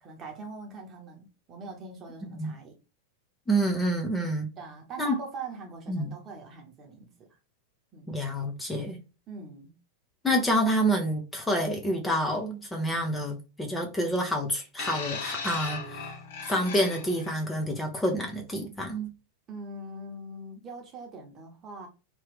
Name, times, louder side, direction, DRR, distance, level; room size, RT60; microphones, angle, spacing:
voice 1, 0.0-2.8 4.6-7.4 7.9-8.1 9.3-9.8 19.5-21.9, right 3 dB, 30° right, 1.1 m, -42 dB
voice 2, 3.5-4.5 5.0-5.2 5.9-6.1 8.1-9.0 10.2-16.2 16.4-19.1, equal, 10° left, 0.7 m, -28 dB
sound 1, 14.8-17.3 18.3-18.4, left 4 dB, 55° left, 0.9 m, -37 dB
3.1 x 2.8 x 3.3 m
figure-of-eight pair, 90°, 0 cm